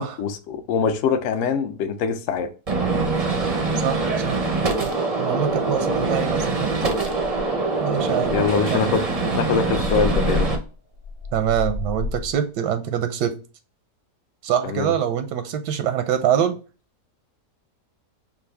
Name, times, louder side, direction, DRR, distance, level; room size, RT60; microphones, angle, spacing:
voice 1, 0.0-2.5 8.3-9.0 9.3-10.5 14.6-14.9, left 6 dB, 70° left, 0.8 m, -23 dB
Gunshot gunfire, 2.7-10.6, right 3 dB, 55° right, 0.4 m, -24 dB
voice 2, 3.8-4.5 4.8-6.7 7.8-8.4 8.7-8.9 11.3-13.3 14.4-16.6, right 9 dB, 85° right, 1.2 m, -24 dB
sound 1, 5.6-5.7 6.0-6.2 6.6-6.7 7.0-7.6 8.2-12.4, left 4 dB, 50° left, 0.3 m, -30 dB
5.3 x 2.5 x 3.2 m
omnidirectional pair, 1.8 m